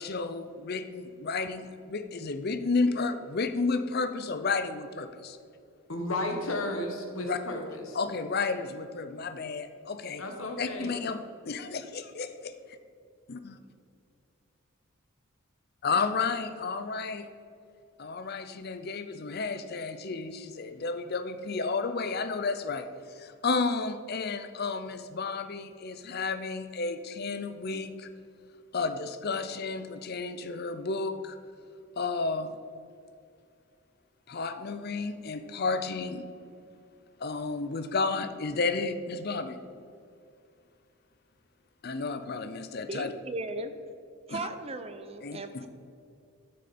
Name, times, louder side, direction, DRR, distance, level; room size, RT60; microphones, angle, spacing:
voice 1, 0.0-5.4 7.2-7.4 7.9-10.2 10.6-12.5 13.3-13.6 15.8-17.3 18.0-28.1 28.7-31.4 32.0-32.5 34.3-36.2 37.2-39.6 41.8-43.1 44.3-44.5 45.2-45.6, left 4 dB, 50° left, 10 dB, 0.6 m, -32 dB
voice 2, 5.9-8.0 10.2-11.0, left 1 dB, 75° left, 3 dB, 1.5 m, -33 dB
voice 3, 42.9-43.7 44.3-45.7, right 2 dB, 30° right, 8 dB, 0.6 m, -36 dB
12.5 x 6.5 x 4.3 m, 2.5 s
head